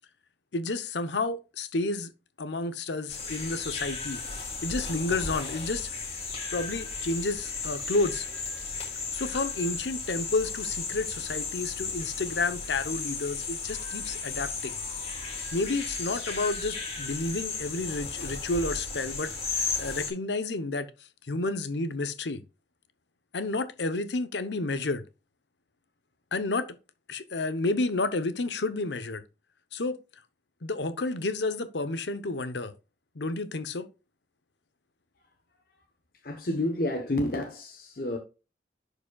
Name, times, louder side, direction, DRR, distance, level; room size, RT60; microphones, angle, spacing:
voice 1, 0.5-2.1 2.4-4.2 4.6-5.9 6.5-8.3 9.1-14.8 15.5-20.9 21.3-22.4 23.3-25.0 26.3-26.8 27.1-29.2 29.7-30.0 30.6-32.7 33.1-33.9, left 3 dB, 85° left, 0.8 m, -30 dB
sound 1, 3.1-20.1, left 4 dB, 35° left, 2.5 m, -35 dB
voice 2, 36.2-38.2, left 1 dB, 55° left, 1.0 m, -29 dB
11.0 x 5.0 x 2.3 m
head